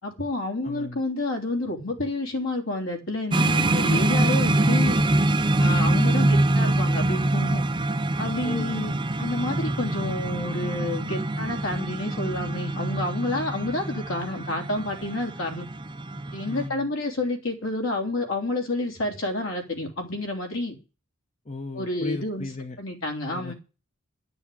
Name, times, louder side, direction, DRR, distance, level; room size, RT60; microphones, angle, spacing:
voice 1, 0.0-5.0 5.6-7.6 8.2-15.7 16.3-20.8 21.7-22.5 22.8-23.5, left 2 dB, 70° left, 3.5 m, -29 dB
voice 2, 0.6-1.0 8.4-8.8 16.4-16.9 21.4-22.8 23.3-23.5, left 2 dB, 35° left, 0.9 m, -36 dB
sound 1, 3.3-16.7, right 1 dB, 20° right, 0.6 m, -24 dB
11.5 x 6.9 x 8.7 m
head